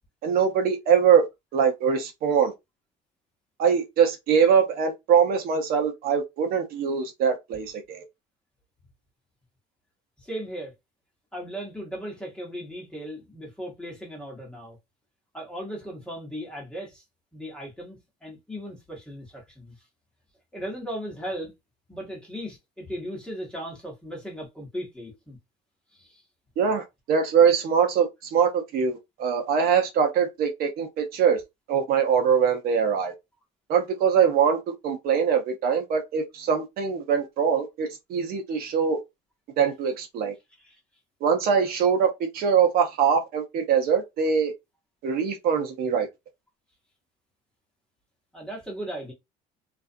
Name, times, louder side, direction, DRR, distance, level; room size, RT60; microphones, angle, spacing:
voice 1, 0.2-1.2 1.5-2.5 3.6-8.0 26.6-31.4 31.7-33.1 33.7-34.6 34.8-39.0 39.6-40.3 41.2-44.5 45.0-46.1, right 7 dB, 60° right, 0.6 m, -23 dB
voice 2, 10.2-10.7 11.3-14.8 15.3-17.0 17.3-19.7 20.5-21.5 21.9-25.4 25.9-26.2 40.6-40.8 48.3-49.1, equal, 5° left, 1.1 m, -37 dB
2.4 x 2.3 x 2.5 m
cardioid pair, 145°, 18 cm